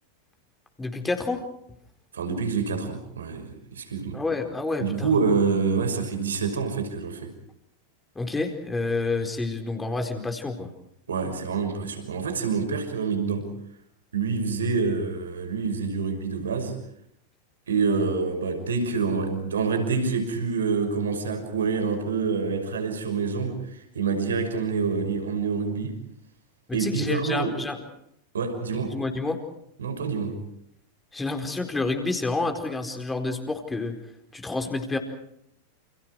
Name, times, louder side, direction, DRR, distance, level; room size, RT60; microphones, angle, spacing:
voice 1, 0.8-1.4 4.1-5.1 8.1-10.7 26.7-27.8 28.9-29.4 31.1-34.0 34.3-35.0, left 3 dB, 10° left, 4.4 m, -29 dB
voice 2, 2.1-4.2 4.8-7.3 11.1-13.5 14.1-16.8 17.7-26.0 26.7-27.5 28.3-29.0 29.8-30.4, right 5 dB, 65° right, 5.9 m, -27 dB
29.5 x 29.0 x 4.8 m
figure-of-eight pair, 90°, 0 cm